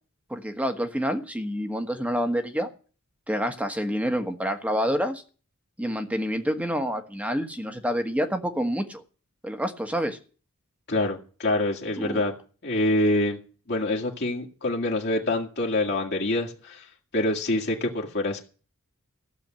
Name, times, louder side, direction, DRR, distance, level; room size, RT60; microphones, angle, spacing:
voice 1, 0.3-2.7 3.3-5.2 5.8-9.0 9.4-10.2 12.0-12.2, equal, 5° right, 1.4 m, -28 dB
voice 2, 10.9-12.3 12.6-13.4 13.7-18.4, left 1 dB, 50° left, 1.9 m, -26 dB
15.0 x 7.1 x 8.8 m
head